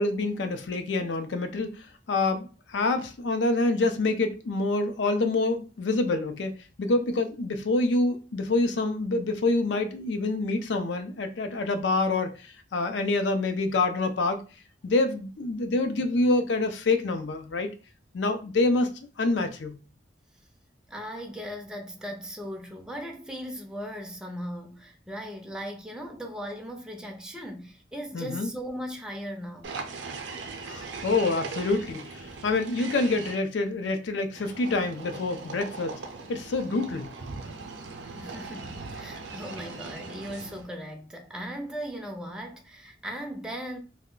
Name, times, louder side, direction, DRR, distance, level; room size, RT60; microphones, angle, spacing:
voice 1, 0.0-6.5 6.8-14.4 14.8-17.7 18.1-18.9 19.2-19.8 28.1-28.5 30.7-36.0 36.3-37.1, left 2 dB, 75° left, 0.5 m, -26 dB
voice 2, 20.9-29.7 38.2-43.8, equal, 5° right, 0.4 m, -38 dB
sound 1, 29.6-33.3 34.3-40.7, right 4 dB, 80° right, 0.5 m, -40 dB
2.2 x 2.1 x 3.7 m
head